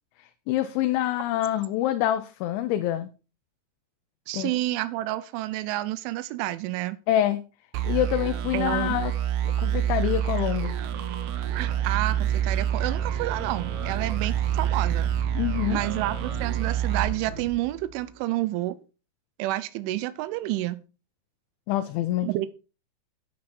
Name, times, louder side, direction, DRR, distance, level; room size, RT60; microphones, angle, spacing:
voice 1, 0.2-3.1 4.3-4.5 7.1-7.4 7.8-9.1 9.4-10.8 15.4-15.8 21.7-22.5, left 12 dB, 80° left, 8 dB, 3.1 m, -26 dB
voice 2, 4.3-7.0 8.5-9.0 11.5-15.1 15.7-18.8 19.4-20.8 22.2-22.5, right 16 dB, 85° right, 15 dB, 3.2 m, -29 dB
sound 1, 7.7-18.0, right 10 dB, 70° right, 2.6 m, -28 dB
sound 2, 11.4-17.4, right 4 dB, 15° left, 3.7 m, -40 dB
9.9 x 9.6 x 4.4 m, 0.32 s
omnidirectional pair, 5.4 m